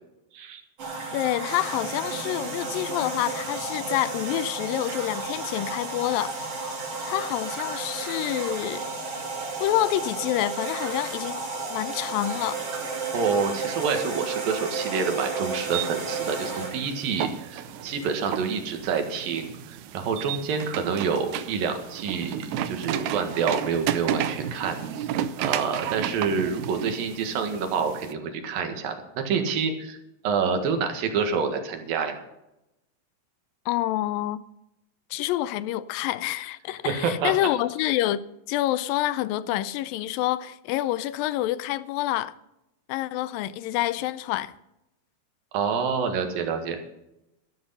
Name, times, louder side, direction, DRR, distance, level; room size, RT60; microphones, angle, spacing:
sound 1, 0.8-18.5, right 4 dB, 45° right, 3.4 m, -33 dB
voice 1, 1.1-6.6 7.0-8.9 9.6-11.4 11.7-12.6 33.7-34.4 35.1-42.3 42.9-44.5, left 14 dB, 90° left, 2.4 m, -27 dB
voice 2, 13.1-25.1 25.4-28.9 29.3-30.0 30.2-32.2 36.9-37.3 45.5-46.8, right 5 dB, 90° right, 3.4 m, -27 dB
sound 2, 15.7-28.1, right 10 dB, 75° right, 1.9 m, -33 dB
12.5 x 12.0 x 5.6 m
omnidirectional pair, 3.9 m